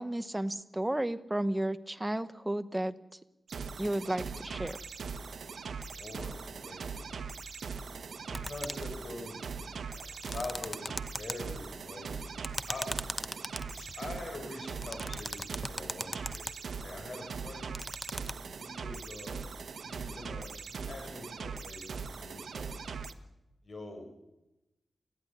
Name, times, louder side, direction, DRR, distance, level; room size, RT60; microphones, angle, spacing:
voice 1, 0.0-2.9 3.8-4.8, right 1 dB, 10° right, 11 dB, 1.0 m, -33 dB
sound 1, 3.5-23.1, right 5 dB, 80° right, 1.3 m, -41 dB
voice 2, 5.7-6.3 6.6-6.8 8.3-9.3 9.9-12.1 12.7-12.9 13.7-16.5 16.8-17.7 18.6-19.4 19.8-22.7 23.6-24.1, left 2 dB, 50° left, 4 dB, 5.0 m, -44 dB
sound 2, 8.3-9.0 10.0-11.3 12.4-14.0 14.8-16.5 17.6-18.3, left 1 dB, 15° left, 0.8 m, -38 dB
20.0 x 14.5 x 9.7 m, 0.95 s
wide cardioid pair, 95°, 0 cm